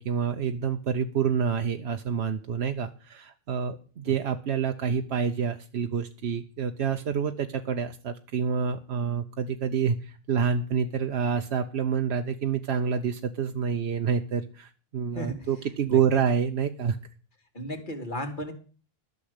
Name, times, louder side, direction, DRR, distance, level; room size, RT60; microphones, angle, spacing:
voice 1, 0.0-17.0, right 7 dB, 90° right, 6 dB, 1.1 m, -28 dB
voice 2, 15.1-15.5 15.9-16.0 17.5-18.5, equal, 50° left, 4 dB, 2.5 m, -35 dB
12.0 x 6.5 x 8.0 m, 0.39 s
omnidirectional pair, 1.0 m